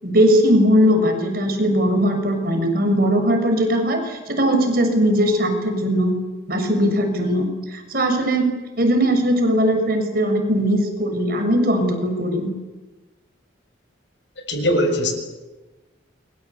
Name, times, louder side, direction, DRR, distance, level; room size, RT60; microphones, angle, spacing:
voice 1, 0.0-6.2 6.5-12.5, equal, 50° right, 5 dB, 6.6 m, -19 dB
voice 2, 14.5-15.1, equal, 70° left, 6 dB, 6.7 m, -20 dB
29.0 x 23.5 x 8.4 m, 1.2 s
head